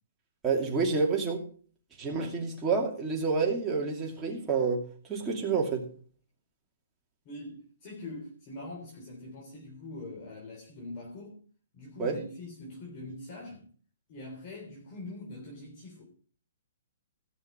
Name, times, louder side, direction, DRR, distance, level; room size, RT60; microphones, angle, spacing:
voice 1, 0.4-1.4 2.0-4.8 5.1-5.9 12.0-12.2, right 4 dB, 15° right, 2.7 m, -28 dB
voice 2, 2.0-2.5 7.3-11.4 11.7-13.7 14.1-16.0, left 2 dB, 35° left, 3.5 m, -43 dB
16.5 x 6.7 x 5.1 m
hypercardioid pair, 160°, 0 cm